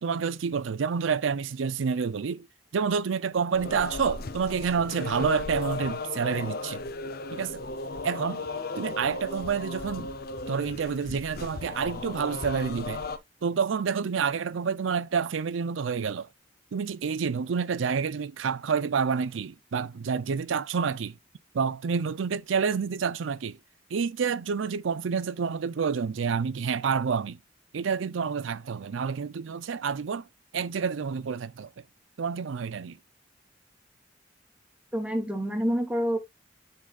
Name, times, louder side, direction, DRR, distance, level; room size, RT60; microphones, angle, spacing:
voice 1, 0.0-2.5 2.7-6.8 7.3-7.6 8.0-8.4 8.8-10.1 10.5-13.0 13.4-16.3 16.7-21.2 21.5-23.6 23.9-27.4 27.7-30.3 30.5-31.7 32.2-33.0, right 6 dB, 85° right, 0.5 m, -28 dB
sound 1, 3.5-13.2, left 3 dB, 50° left, 0.6 m, -36 dB
voice 2, 34.9-36.2, equal, 5° right, 1.1 m, -27 dB
10.5 x 4.0 x 2.3 m
head